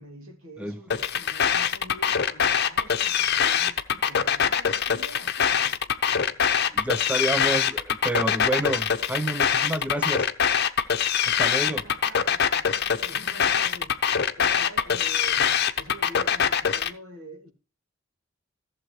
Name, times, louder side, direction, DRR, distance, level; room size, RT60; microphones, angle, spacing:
voice 1, 0.0-6.4 11.6-17.5, right 1 dB, 80° right, 2.6 m, -46 dB
sound 1, 0.9-16.9, left 7 dB, 50° left, 0.8 m, -23 dB
voice 2, 6.7-10.3 11.3-11.8, right 1 dB, 5° right, 0.6 m, -29 dB
15.0 x 7.3 x 3.1 m
head